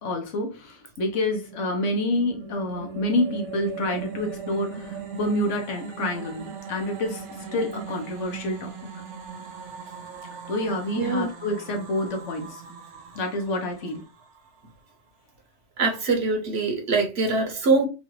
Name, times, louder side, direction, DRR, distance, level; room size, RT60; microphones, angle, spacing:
voice 1, 0.0-7.2 7.5-8.7 10.5-12.6 13.1-14.0, left 1 dB, 90° left, 1.2 m, -28 dB
sound 1, 1.3-14.5, right 5 dB, 80° right, 1.1 m, -39 dB
voice 2, 11.0-11.3 15.8-17.9, right 3 dB, 60° right, 1.2 m, -23 dB
3.8 x 2.4 x 3.0 m
omnidirectional pair, 1.2 m